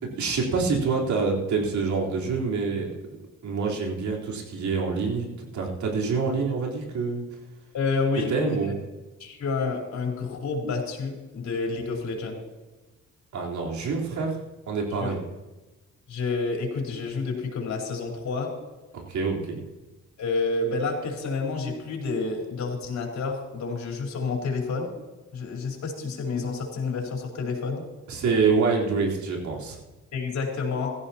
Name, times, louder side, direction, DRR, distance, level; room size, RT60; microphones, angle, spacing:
voice 1, 0.0-2.9 3.4-5.3 5.5-7.2 8.3-8.8 13.3-14.4 14.7-15.2 18.9-19.6 28.1-29.8, right 4 dB, 70° right, -2 dB, 4.0 m, -26 dB
voice 2, 7.7-8.7 9.2-12.4 15.0-15.1 16.1-18.5 20.2-24.9 25.3-27.8 30.1-30.9, left 4 dB, 65° left, 0 dB, 4.5 m, -29 dB
17.5 x 14.5 x 2.9 m, 1.2 s
cardioid pair, 90°, 30 cm